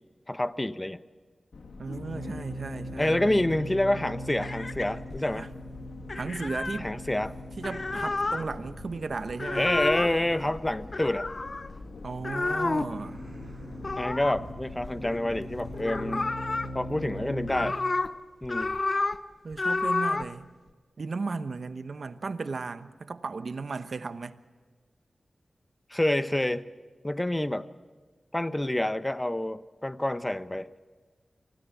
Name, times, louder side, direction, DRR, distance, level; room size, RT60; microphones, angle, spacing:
voice 1, 0.3-1.0 3.0-5.5 6.8-7.4 9.5-11.3 14.0-16.3 16.7-17.8 18.4-18.8 25.9-26.7 27.0-27.7 28.3-30.7, left 1 dB, 20° left, 0.9 m, -28 dB
sound 1, 1.5-17.7, left 1 dB, 80° left, 2.4 m, -41 dB
voice 2, 1.8-3.2 5.3-5.5 6.1-6.9 7.6-9.7 12.0-13.2 19.4-20.5 21.0-24.4, right 4 dB, 70° right, 1.0 m, -35 dB
sound 2, 4.4-5.4 6.1-6.8 7.4-8.4 9.3-10.1 10.9-11.7 12.2-13.0 13.8-15.4 15.7-16.7 17.2-18.1 18.4-19.2 19.5-20.3, left 3 dB, 50° left, 0.8 m, -30 dB
sound 3, 7.7-12.4 12.8-16.3, right 1 dB, 25° right, 7.4 m, -50 dB
24.5 x 17.0 x 7.1 m
cardioid pair, 40°, 0 cm